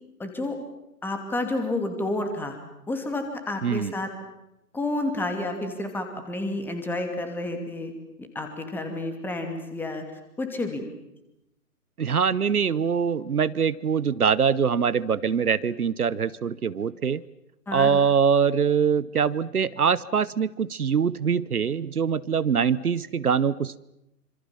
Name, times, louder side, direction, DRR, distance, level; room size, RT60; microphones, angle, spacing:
voice 1, 0.2-0.6 1.0-2.6 2.9-4.1 4.7-7.9 8.3-10.0 10.4-10.8 17.7-18.0, left 2 dB, 5° left, 6 dB, 2.6 m, -30 dB
voice 2, 3.6-3.9 12.0-17.2 17.7-23.8, right 6 dB, 65° right, 18 dB, 1.0 m, -23 dB
27.0 x 26.5 x 7.3 m, 0.88 s
figure-of-eight pair, 135°, 47 cm